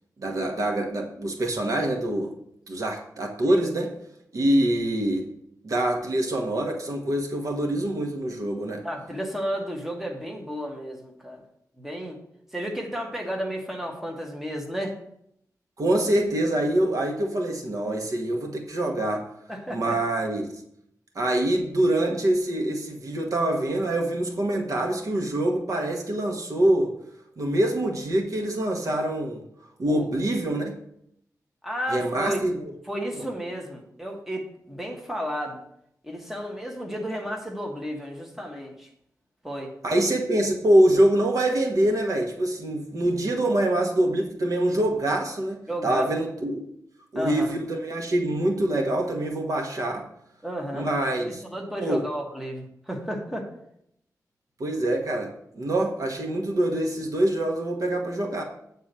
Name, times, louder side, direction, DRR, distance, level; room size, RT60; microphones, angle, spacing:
voice 1, 0.2-2.3 2.7-3.9 4.3-5.2 5.6-8.8 15.8-19.2 19.7-20.5 21.1-27.0 27.4-29.4 29.8-30.7 31.9-32.7 33.2-33.3 39.8-46.7 47.1-50.0 50.7-51.4 51.8-52.0 54.6-55.3 55.5-58.4, right 1 dB, 60° right, 2 dB, 1.3 m, -25 dB
voice 2, 8.8-11.4 11.8-12.2 12.5-14.9 19.5-20.0 29.8-30.1 31.6-32.4 32.9-35.6 36.0-38.9 39.4-39.7 45.7-46.1 47.1-47.5 50.4-50.9 51.2-53.5, equal, 5° right, 0 dB, 1.3 m, -32 dB
8.6 x 4.1 x 6.7 m, 0.74 s
wide cardioid pair, 140°, 7 cm